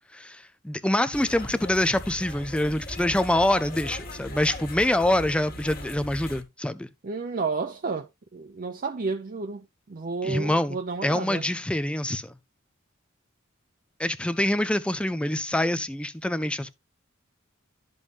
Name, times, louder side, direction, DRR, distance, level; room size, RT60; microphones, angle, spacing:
voice 1, 0.1-6.9 10.2-10.8 11.0-12.3 14.0-16.7, left 1 dB, 5° left, 0.4 m, -25 dB
sound 1, 1.1-6.4, left 1 dB, 45° left, 1.6 m, -39 dB
voice 2, 7.0-11.4, right 4 dB, 45° right, 0.6 m, -31 dB
12.5 x 5.4 x 2.4 m
head